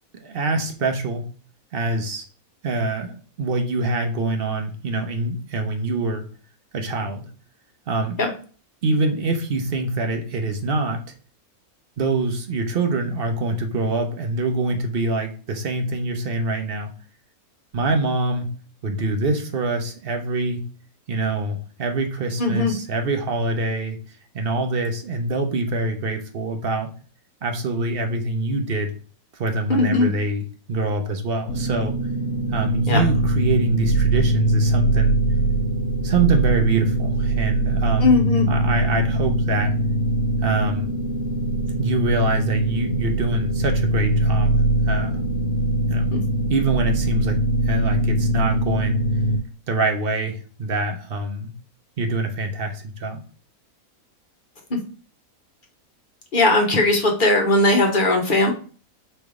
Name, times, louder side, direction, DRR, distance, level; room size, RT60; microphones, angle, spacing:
voice 1, 0.1-1.2 1.7-2.2 2.6-6.3 6.7-7.3 7.9-8.2 8.8-11.0 12.0-16.9 17.7-18.5 18.8-20.6 21.1-24.0 24.3-26.9 27.4-28.9 29.3-31.9 32.5-35.2 36.0-38.1 38.5-39.7 40.4-40.9 41.8-44.6 44.8-45.2 45.9-46.1 46.5-47.4 47.6-49.0 49.7-51.5 52.0-53.2, right 2 dB, 50° right, 4 dB, 0.8 m, -25 dB
voice 2, 22.4-22.7 29.7-30.1 32.9-33.0 38.0-38.5 46.1-46.2 56.3-58.5, left 2 dB, 40° left, 1 dB, 0.9 m, -18 dB
sound 1, 31.5-49.4, right 1 dB, 80° left, 1.0 m, -22 dB
3.3 x 3.1 x 4.7 m, 0.39 s
omnidirectional pair, 1.5 m